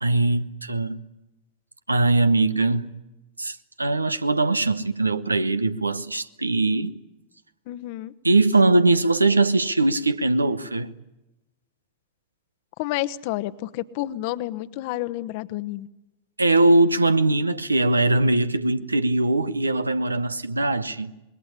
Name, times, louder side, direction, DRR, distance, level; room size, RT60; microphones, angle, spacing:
voice 1, 0.0-1.0 1.9-2.9 3.4-6.9 8.2-10.9 16.4-21.1, right 2 dB, 80° right, 1.1 m, -21 dB
voice 2, 7.7-8.1 12.8-15.9, left 15 dB, 45° left, 1.1 m, -30 dB
26.5 x 22.0 x 9.9 m
figure-of-eight pair, 90°, 0 cm